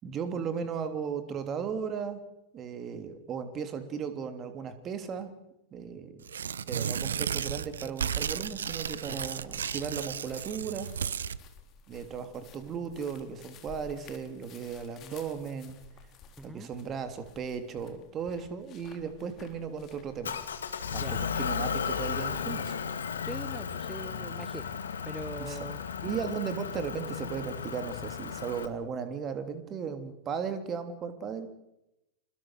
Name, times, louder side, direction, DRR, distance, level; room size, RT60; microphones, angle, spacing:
voice 1, 0.0-2.2 2.5-5.3 5.7-6.2 6.7-10.9 11.9-15.8 16.4-20.4 20.9-22.8 25.4-25.6 26.0-31.5, right 6 dB, 30° right, 8 dB, 3.2 m, -36 dB
Tearing, 6.2-11.4, right 7 dB, 65° right, 0.9 m, -34 dB
sound 1, 7.7-21.0, left 6 dB, 35° left, 4.0 m, -54 dB
voice 2, 16.4-16.7 21.0-21.3 23.3-25.8, right 1 dB, 5° right, 14 dB, 1.0 m, -42 dB
Motor vehicle (road) / Engine, 20.2-28.7, left 7 dB, 70° left, 2.0 m, -35 dB
28.5 x 21.0 x 6.6 m, 0.89 s
figure-of-eight pair, 90°, 0 cm